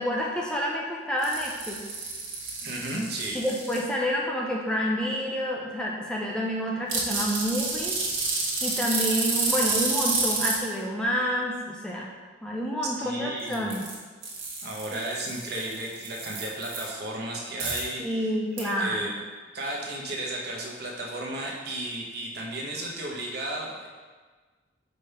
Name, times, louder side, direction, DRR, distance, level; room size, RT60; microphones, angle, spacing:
voice 1, 0.0-1.9 3.3-8.0 8.6-12.1 12.4-13.9 14.9-15.0 18.0-19.2, equal, 5° left, -3 dB, 0.5 m, -29 dB
sound 1, 1.2-3.8 6.9-10.5 13.4-13.9 14.2-16.8 17.6-17.8 18.6-18.7, right 3 dB, 90° right, 1.3 m, -29 dB
voice 2, 2.6-3.4 13.0-13.7 14.6-18.2 18.6-19.1 19.5-23.9, right 1 dB, 55° right, -2 dB, 1.0 m, -34 dB
5.2 x 3.4 x 5.5 m, 1.4 s
head